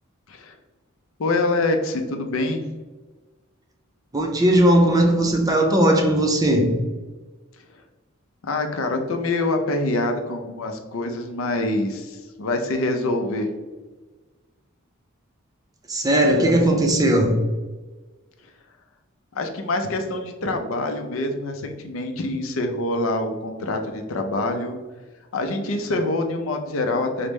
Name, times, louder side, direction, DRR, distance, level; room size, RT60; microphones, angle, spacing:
voice 1, 1.2-2.6 8.4-13.5 16.4-16.6 19.3-24.8 25.3-27.3, left 2 dB, 70° left, 0.5 m, -25 dB
voice 2, 4.1-6.8 15.9-17.4, right 1 dB, 15° right, 0.5 m, -18 dB
5.0 x 2.1 x 3.1 m
head